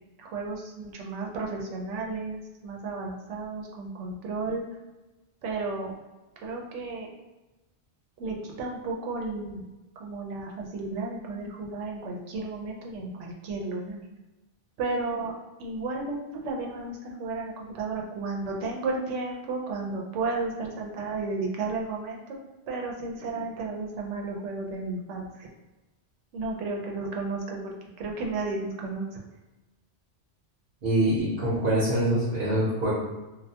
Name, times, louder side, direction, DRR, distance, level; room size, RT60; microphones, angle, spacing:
voice 1, 0.2-4.6 5.4-6.0 6.4-7.1 8.2-9.7 10.0-14.0 14.8-15.3 15.6-22.2 22.7-25.5 26.3-29.2, right 3 dB, 90° right, -1 dB, 0.9 m, -33 dB
voice 2, 30.8-32.9, right 1 dB, 55° right, -8 dB, 0.9 m, -24 dB
2.3 x 2.1 x 2.7 m, 1.1 s
omnidirectional pair, 1.2 m